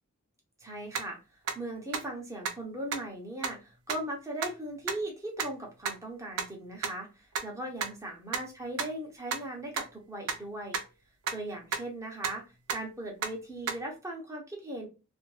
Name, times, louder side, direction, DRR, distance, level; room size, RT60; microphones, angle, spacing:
voice 1, 0.6-1.2 1.5-10.8 11.3-12.4 12.7-14.9, right 1 dB, 15° right, 0 dB, 0.9 m, -38 dB
sound 1, 0.9-1.0 1.5-1.6 1.9-2.0 2.4-2.5 2.9-3.0 3.4-3.5 3.9-4.0 4.4-4.5 4.9-5.0 5.4-5.5 5.9-6.0 6.4-6.5 6.8-6.9 7.3-7.4 7.8-7.9 8.3-8.4 8.8-8.9 9.3-9.4 9.8-9.9 10.3-10.4 10.7-10.8 11.3-11.4 11.7-11.8 12.2-12.3 12.7-12.8 13.2-13.3 13.7-13.8, right 6 dB, 70° right, 0.5 m, -30 dB
2.9 x 2.5 x 2.3 m, 0.30 s
head